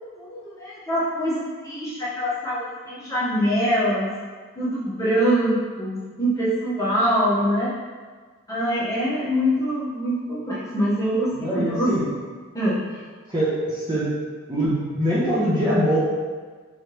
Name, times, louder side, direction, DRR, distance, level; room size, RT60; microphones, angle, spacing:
voice 1, 0.0-4.1 4.5-7.7 8.5-11.9 12.5-13.1, equal, 15° left, -9 dB, 1.0 m, -24 dB
voice 2, 11.3-12.1 13.3-14.1 14.5-16.0, equal, 20° right, -9 dB, 0.7 m, -23 dB
3.8 x 3.1 x 3.2 m, 1.5 s
head